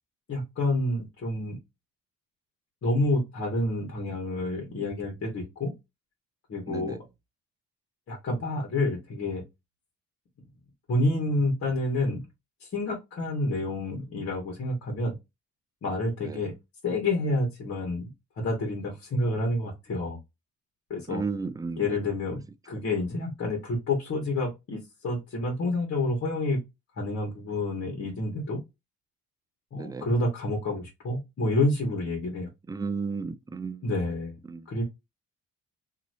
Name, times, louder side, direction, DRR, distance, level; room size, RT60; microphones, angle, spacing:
voice 1, 0.3-1.6 2.8-5.7 6.5-7.0 8.1-9.4 10.9-12.2 12.6-15.1 15.8-16.5 16.8-18.1 18.4-20.2 20.9-21.2 21.8-26.6 27.0-28.6 29.7-32.5 33.8-34.4 34.7-34.8, left 2 dB, 50° left, 1.5 m, -28 dB
voice 2, 6.7-7.0 16.2-16.5 21.1-22.0 29.8-30.1 32.7-33.8 34.5-34.7, right 4 dB, 10° right, 0.4 m, -34 dB
2.9 x 2.9 x 2.6 m
cardioid pair, 90°, 30 cm